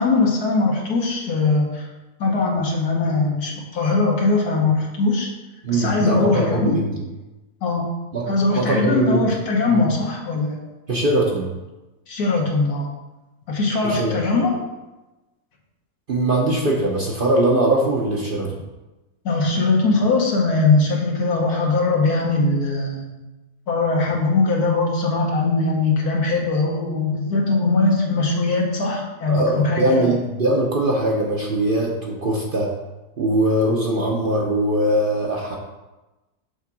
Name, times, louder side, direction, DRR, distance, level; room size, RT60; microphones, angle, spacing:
voice 1, 0.0-1.9 2.2-5.3 5.7-6.8 7.6-7.9 8.3-10.7 12.1-12.9 13.5-14.6 19.3-23.2 23.7-30.2, left 3 dB, 75° left, -1 dB, 1.8 m, -20 dB
voice 2, 5.6-7.0 8.1-9.3 9.7-9.9 10.9-11.5 13.8-14.2 16.1-18.6 29.3-32.7 33.2-35.6, right 1 dB, 45° right, -1 dB, 0.8 m, -21 dB
6.6 x 3.6 x 5.9 m, 1.1 s
omnidirectional pair, 1.6 m